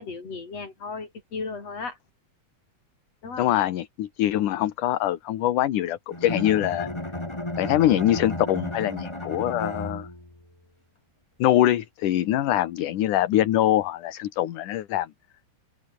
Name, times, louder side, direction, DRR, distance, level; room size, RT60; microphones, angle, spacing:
voice 1, 0.0-2.0 3.2-3.5, left 4 dB, 50° left, 6.4 m, -35 dB
voice 2, 3.4-6.9 7.6-10.1 11.4-15.1, left 13 dB, 70° left, 2.8 m, -23 dB
Bowed string instrument, 6.1-10.4, left 1 dB, 10° left, 3.1 m, -33 dB
open air
omnidirectional pair, 3.8 m